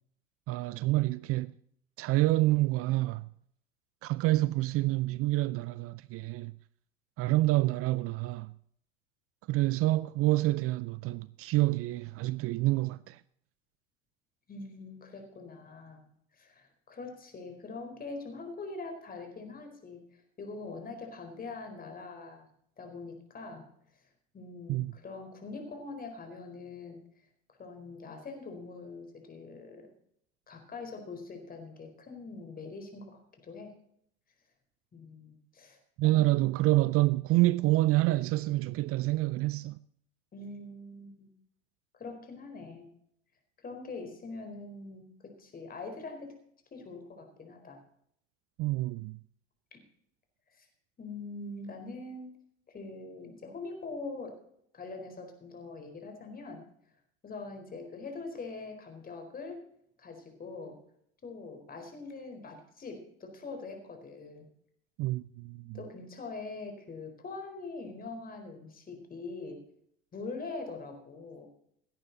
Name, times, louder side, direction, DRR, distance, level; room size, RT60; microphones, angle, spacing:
voice 1, 0.5-1.5 2.0-3.3 4.0-6.5 7.2-8.5 9.5-13.2 24.7-24.9 36.0-39.8 48.6-49.2 65.0-65.8, right 18 dB, 45° right, 0.5 m, -27 dB
voice 2, 14.5-16.0 16.4-20.1 20.4-22.5 22.8-23.7 24.3-27.0 27.6-29.9 30.5-33.7 34.9-35.8 36.0-36.5 40.3-41.3 41.9-42.9 43.6-46.3 46.7-47.8 49.7-49.8 50.6-50.7 51.0-52.3 52.7-54.4 54.7-56.6 57.2-59.6 60.0-60.8 61.2-64.5 65.7-69.6 70.1-71.5, left 3 dB, 30° left, 4.3 m, -43 dB
17.0 x 10.0 x 4.0 m
hypercardioid pair, 95°, 31 cm